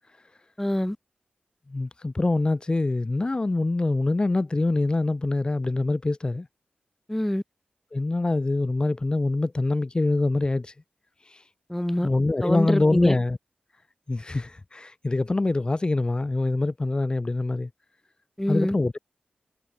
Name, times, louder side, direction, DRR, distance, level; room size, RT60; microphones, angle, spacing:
voice 1, 0.6-1.0 7.1-7.4 11.7-12.1 12.4-13.2 18.4-18.7, left 1 dB, 10° left, 2.3 m, -25 dB
voice 2, 1.7-6.5 7.9-10.7 11.3-11.4 12.0-13.4 14.1-17.7 18.5-19.0, left 2 dB, 30° left, 2.1 m, -24 dB
wide cardioid pair, 90°, 3 cm